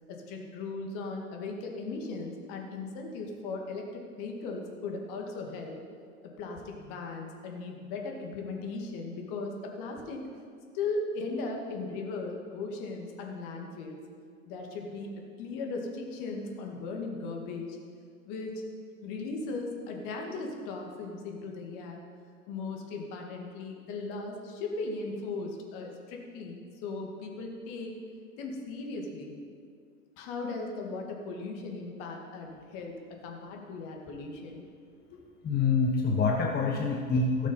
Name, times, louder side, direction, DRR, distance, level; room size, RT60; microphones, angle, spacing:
voice 1, 0.1-5.8 6.2-10.2 10.7-14.0 14.5-15.1 15.4-17.8 18.3-18.6 19.0-22.0 22.5-27.9 28.4-29.3 30.2-34.6 35.1-35.2, left 3 dB, 50° left, 1 dB, 2.2 m, -37 dB
voice 2, 35.4-37.5, left 4 dB, 20° left, 0 dB, 1.1 m, -26 dB
16.5 x 6.4 x 5.5 m, 2.2 s
figure-of-eight pair, 90°, 43 cm